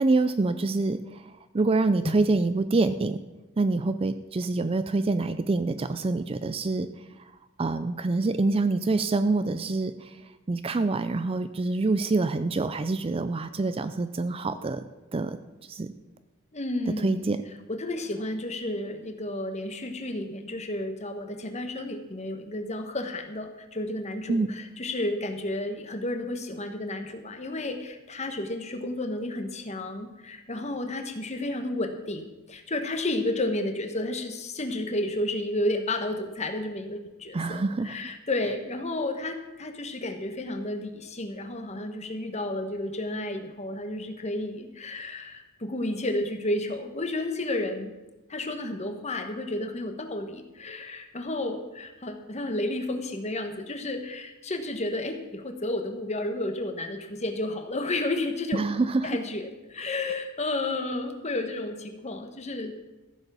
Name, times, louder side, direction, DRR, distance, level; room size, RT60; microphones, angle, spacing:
voice 1, 0.0-3.2 3.6-6.9 7.6-10.1 10.5-14.8 15.1-15.4 15.7-15.9 17.0-17.4 24.3-24.5 37.3-38.0 58.5-59.2, right 3 dB, 25° right, 11 dB, 0.4 m, -26 dB
voice 2, 16.5-17.3 17.7-47.9 48.3-58.6 59.0-62.9, left 1 dB, 30° left, 6 dB, 1.2 m, -32 dB
14.5 x 7.2 x 6.9 m, 1.1 s
head